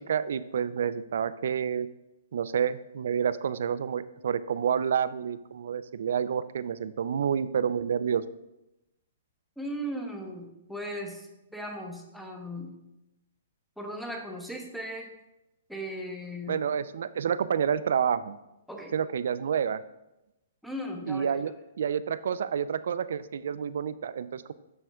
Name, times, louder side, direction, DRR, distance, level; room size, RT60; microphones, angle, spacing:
voice 1, 0.1-1.9 2.3-8.2 16.5-18.4 18.9-19.8 21.1-21.5 21.8-24.5, right 7 dB, 70° right, 15 dB, 0.3 m, -29 dB
voice 2, 9.6-12.8 13.8-15.1 15.7-16.6 18.7-18.9 20.6-21.4, equal, ahead, 2 dB, 0.8 m, -37 dB
7.7 x 6.1 x 2.3 m, 0.93 s
hypercardioid pair, 150°, 0 cm